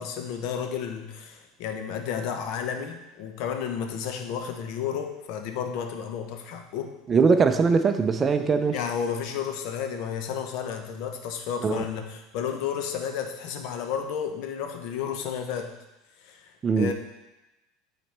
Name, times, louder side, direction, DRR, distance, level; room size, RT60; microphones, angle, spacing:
voice 1, 0.0-6.9 8.7-15.7 16.2-16.9, left 7 dB, 65° left, 5 dB, 0.8 m, -32 dB
voice 2, 7.1-8.8 11.6-11.8 16.6-16.9, right 5 dB, 25° right, 8 dB, 0.5 m, -21 dB
8.7 x 4.1 x 3.4 m, 1.0 s
supercardioid pair, 125°, 0 cm